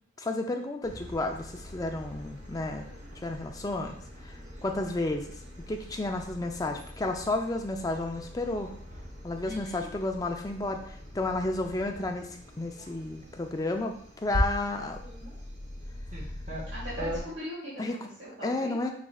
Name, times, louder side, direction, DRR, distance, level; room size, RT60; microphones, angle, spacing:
voice 1, 0.2-2.9 3.2-4.0 4.2-4.4 4.6-5.4 5.7-8.7 9.2-13.9 14.2-15.0 17.8-18.0 18.4-18.9, left 2 dB, 15° left, 4 dB, 0.3 m, -32 dB
sound 1, 0.8-17.2, equal, 35° right, 0.9 m, -40 dB
voice 2, 9.4-10.0 16.7-18.8, equal, 60° right, -9 dB, 1.6 m, -40 dB
4.9 x 4.1 x 2.3 m, 0.64 s
head